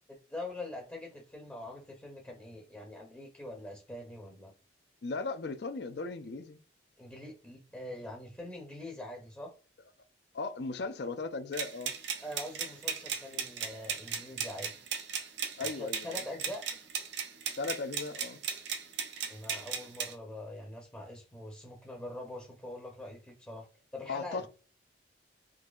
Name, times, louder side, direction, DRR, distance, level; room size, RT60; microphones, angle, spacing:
voice 1, 0.3-4.5 7.0-9.5 12.2-14.7 15.6-16.6 19.3-23.7 23.9-24.5, left 1 dB, 10° left, 0.6 m, -43 dB
voice 2, 5.0-6.6 10.3-11.9 15.6-16.2 17.6-18.4 24.1-24.5, left 3 dB, 60° left, 0.5 m, -37 dB
sound 1, 11.5-20.1, right 7 dB, 70° right, 0.6 m, -37 dB
3.8 x 2.8 x 2.3 m
head